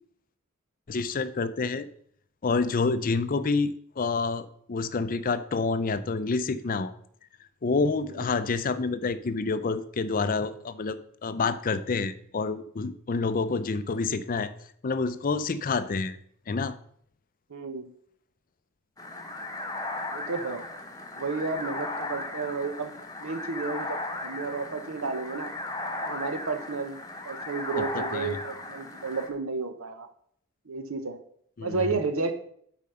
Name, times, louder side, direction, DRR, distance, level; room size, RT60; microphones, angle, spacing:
voice 1, 0.9-1.9 2.4-6.9 7.6-14.5 14.8-16.2 16.5-16.8 27.8-28.4 31.6-31.9, left 4 dB, 40° left, 13 dB, 0.5 m, -28 dB
voice 2, 17.5-17.9 20.1-20.6 21.2-22.9 23.2-25.5 26.0-27.0 27.2-30.1 30.7-31.2 31.6-32.3, right 4 dB, 70° right, 7 dB, 0.9 m, -32 dB
sound 1, 19.0-29.3, left 2 dB, 15° left, 1.0 m, -36 dB
8.4 x 5.1 x 5.7 m, 0.65 s
head